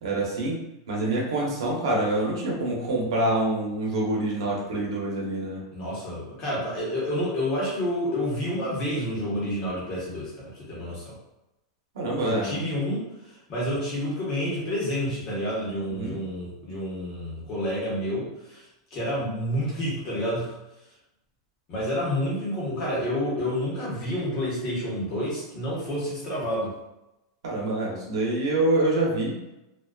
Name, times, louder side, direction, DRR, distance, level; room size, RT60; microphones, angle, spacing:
voice 1, 0.0-0.6 0.9-5.6 11.9-12.6 16.0-16.2 27.4-29.4, right 2 dB, 75° right, -3 dB, 0.8 m, -26 dB
voice 2, 5.7-11.1 12.2-18.6 18.9-20.6 21.7-26.7, equal, 30° left, -7 dB, 0.9 m, -29 dB
2.4 x 2.2 x 2.3 m, 0.93 s
supercardioid pair, 170°, 2 cm